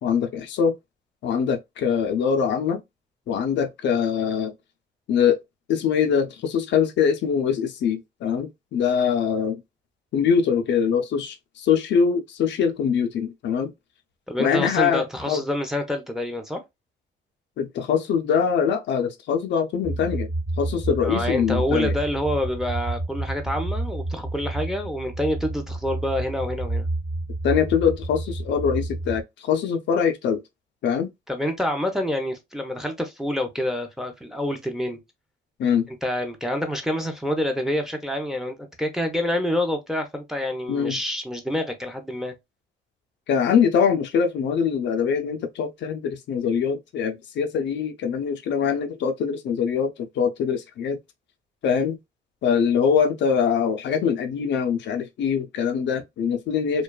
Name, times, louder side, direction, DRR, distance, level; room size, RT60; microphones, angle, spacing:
voice 1, 0.0-0.7 1.2-2.8 3.3-4.5 5.1-5.4 5.7-9.6 10.1-13.7 14.4-15.4 17.6-20.3 20.6-21.9 27.4-30.4 30.8-31.1 35.6-35.9 40.7-41.0 43.3-51.0 51.6-52.0 52.4-56.8, left 7 dB, 65° left, 0.4 m, -23 dB
voice 2, 14.3-16.6 21.0-26.9 31.3-35.0 36.0-42.3, left 1 dB, ahead, 0.6 m, -27 dB
sound 1, 19.8-29.2, right 2 dB, 20° right, 1.0 m, -30 dB
2.5 x 2.2 x 2.2 m
cardioid pair, 90°, 20 cm